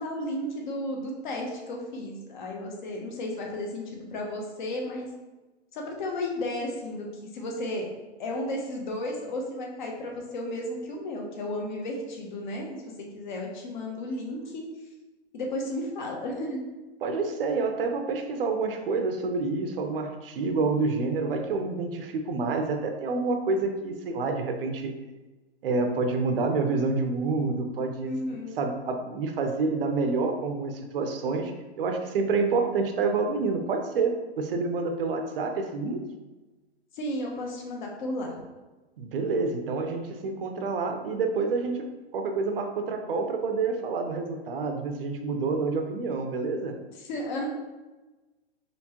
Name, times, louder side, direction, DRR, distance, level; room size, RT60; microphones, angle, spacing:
voice 1, 0.0-5.1 5.7-7.9 8.2-14.6 15.3-16.6 28.0-28.6 36.9-38.4 47.0-47.5, left 1 dB, 45° left, 0 dB, 0.9 m, -33 dB
voice 2, 17.0-24.9 25.6-28.1 28.6-31.5 31.8-36.0 39.0-46.7, right 4 dB, 60° right, 5 dB, 0.6 m, -28 dB
4.4 x 3.2 x 2.9 m, 1.1 s
hypercardioid pair, 160°, 32 cm